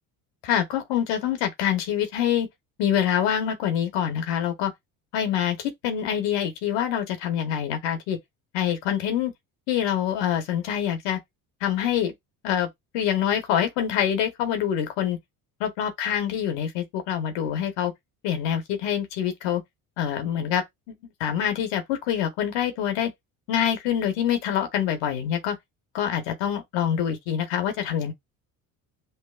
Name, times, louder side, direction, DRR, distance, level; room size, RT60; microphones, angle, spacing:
voice 1, 0.4-2.5 2.8-4.7 5.1-8.2 8.5-9.3 9.7-11.2 11.6-12.1 12.4-12.7 12.9-15.2 15.6-17.9 18.2-19.6 20.0-20.9 21.2-23.1 23.5-25.6 25.9-28.1, left 9 dB, 75° left, 1.2 m, -25 dB
5.7 x 2.5 x 2.4 m
hypercardioid pair, 70°, 44 cm